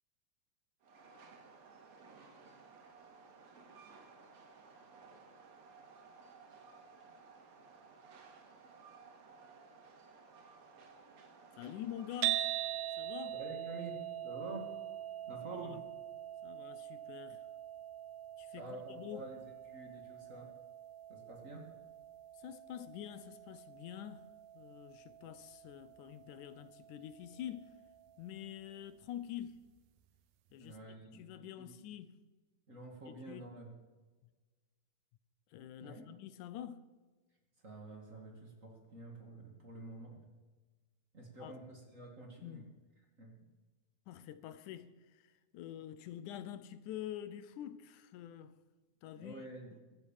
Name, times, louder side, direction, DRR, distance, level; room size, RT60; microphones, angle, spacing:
Train, 0.8-12.7, right 4 dB, 60° right, 3.0 m, -58 dB
voice 1, 11.6-12.5 13.0-13.4 15.5-15.8 16.4-17.5 18.4-19.3 22.4-27.8 28.2-29.6 30.5-30.8 31.1-32.2 33.1-33.5 35.5-36.9 41.4-41.5 42.4-42.7 44.1-48.5 49.0-49.5, left 11 dB, 85° left, 2.3 m, -47 dB
sound 1, 12.2-28.5, right 13 dB, 90° right, 2.3 m, -43 dB
voice 2, 13.3-14.0 14.2-14.7 15.3-15.8 18.6-19.4 19.7-20.5 21.1-21.6 30.6-31.8 32.7-33.7 35.8-36.1 37.6-40.2 41.1-42.6 43.2-43.3 49.2-49.7, right 2 dB, 25° right, 2.3 m, -48 dB
22.5 x 8.3 x 7.3 m
omnidirectional pair, 3.5 m